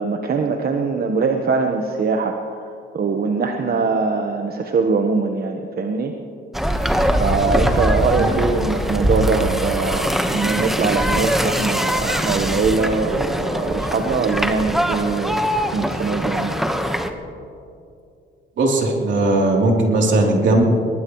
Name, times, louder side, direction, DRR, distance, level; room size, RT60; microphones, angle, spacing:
voice 1, 0.0-2.4 2.9-6.1 7.2-15.4 15.7-16.6, right 4 dB, 50° right, 4 dB, 1.2 m, -22 dB
sound 1, 6.5-17.1, equal, ahead, 1.3 m, -22 dB
voice 2, 18.6-20.6, right 2 dB, 70° right, -1 dB, 3.4 m, -17 dB
23.0 x 19.5 x 3.2 m, 2.5 s
cardioid pair, 90°, 20 cm